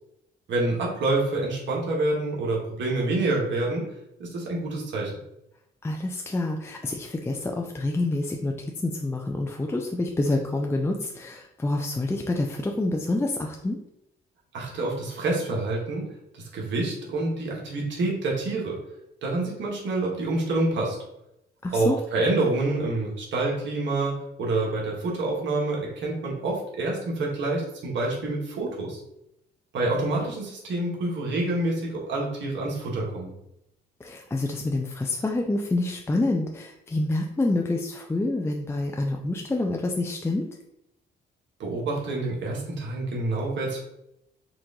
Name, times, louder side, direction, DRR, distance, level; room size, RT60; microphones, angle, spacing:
voice 1, 0.5-3.9 4.2-5.1 14.5-16.1 16.3-18.8 19.2-21.0 21.7-24.1 24.4-29.0 29.7-33.3 41.6-43.8, right 2 dB, 65° right, -2 dB, 1.4 m, -27 dB
voice 2, 5.8-13.8 21.6-22.0 34.0-40.5, left 2 dB, 10° left, 1 dB, 0.4 m, -27 dB
4.6 x 2.5 x 3.7 m, 0.82 s
cardioid pair, 90°, 20 cm